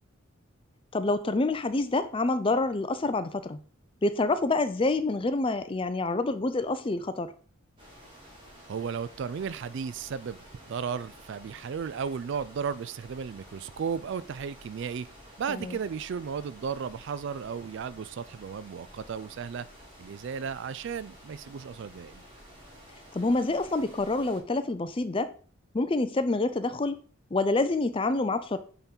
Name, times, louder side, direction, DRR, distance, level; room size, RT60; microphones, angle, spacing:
voice 1, 0.9-3.6 4.0-7.3 15.5-15.8 23.1-25.3 25.7-27.0 27.3-28.6, left 2 dB, 25° left, 0.5 m, -27 dB
sound 1, 7.8-24.4, equal, 25° right, 2.2 m, -51 dB
voice 2, 8.7-15.1 15.4-19.7 20.0-22.2, right 6 dB, 55° right, 0.3 m, -35 dB
8.8 x 3.8 x 4.4 m
head